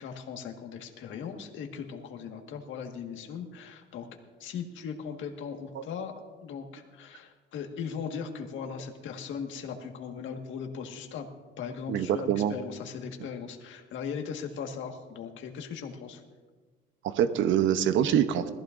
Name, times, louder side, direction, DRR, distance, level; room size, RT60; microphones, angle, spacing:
voice 1, 0.0-4.1 4.4-11.3 11.6-16.2, left 6 dB, 70° left, 4 dB, 1.7 m, -38 dB
voice 2, 11.9-12.5 17.0-18.5, right 9 dB, 70° right, 10 dB, 0.8 m, -25 dB
20.5 x 14.5 x 2.6 m, 1.3 s
cardioid pair, 125°, 20 cm